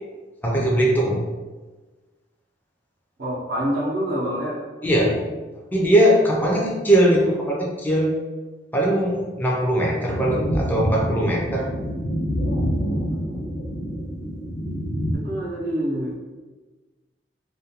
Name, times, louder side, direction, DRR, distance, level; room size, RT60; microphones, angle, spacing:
voice 1, 0.4-1.2 4.8-5.2 5.7-8.2 8.7-11.7, right 1 dB, 10° left, -2 dB, 0.3 m, -20 dB
voice 2, 3.2-4.6 13.1-13.5 15.1-16.1, equal, 60° right, -4 dB, 0.6 m, -27 dB
sound 1, 10.0-15.2, equal, 85° left, 0.5 m, -27 dB
2.4 x 2.2 x 2.7 m, 1.3 s
head